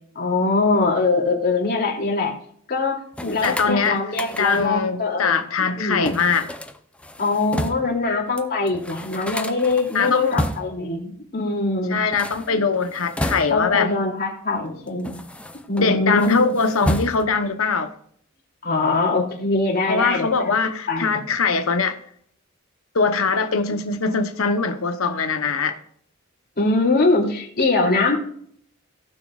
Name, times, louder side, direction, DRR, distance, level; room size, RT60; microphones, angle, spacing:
voice 1, 0.1-2.3 2.7-5.4 5.8-6.2 7.2-12.0 13.5-15.2 15.7-16.5 18.6-20.5 20.9-21.2 23.6-23.8 26.6-28.2, left 3 dB, 50° left, 2.9 m, -22 dB
sound 1, 3.1-4.8 6.0-8.0 8.4-8.5 8.7-10.9 12.0-13.8 14.6-15.8 16.2-17.5, left 1 dB, 5° left, 0.6 m, -31 dB
voice 2, 3.4-4.0 4.4-6.5 9.9-10.3 11.9-13.9 15.8-17.9 19.9-21.9 22.9-25.8, left 4 dB, 70° left, 0.9 m, -22 dB
18.5 x 6.2 x 2.4 m
head